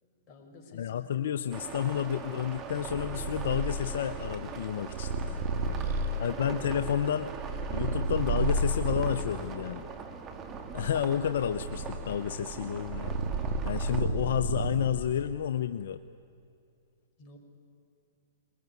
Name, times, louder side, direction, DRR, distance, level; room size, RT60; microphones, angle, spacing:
voice 1, 0.0-0.9 5.5-6.3 17.2-17.4, left 2 dB, 35° left, 1 dB, 5.4 m, -51 dB
voice 2, 0.7-5.4 6.2-7.3 7.7-9.9 10.7-16.0, left 9 dB, 70° left, 11 dB, 0.7 m, -31 dB
sound 1, 1.5-14.0, right 6 dB, 25° right, 2.3 m, -42 dB
Purr, 2.8-9.3 10.0-15.2, right 2 dB, 55° right, 2.2 m, -32 dB
22.0 x 21.5 x 9.6 m, 2.5 s
hypercardioid pair, 130°, 0 cm